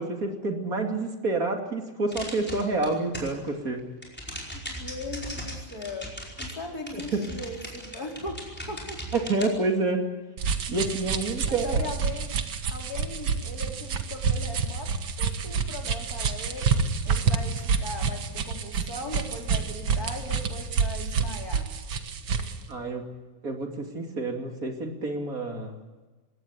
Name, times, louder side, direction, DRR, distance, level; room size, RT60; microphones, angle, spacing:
voice 1, 0.0-3.9 6.9-7.2 9.1-10.0 10.7-11.9 22.7-23.1 23.4-25.8, right 3 dB, 45° right, 4 dB, 3.1 m, -28 dB
sound 1, 2.1-3.5 3.8-9.5, equal, 5° left, 5.0 m, -38 dB
voice 2, 4.5-6.1 6.4-8.4 8.7-9.2 11.5-12.3 12.7-14.9 15.2-16.7 17.0-21.7, left 2 dB, 45° left, 1 dB, 4.9 m, -38 dB
sound 2, 10.4-22.6, right 5 dB, 85° right, 2.3 m, -28 dB
21.5 x 17.5 x 9.5 m, 1.2 s
omnidirectional pair, 2.1 m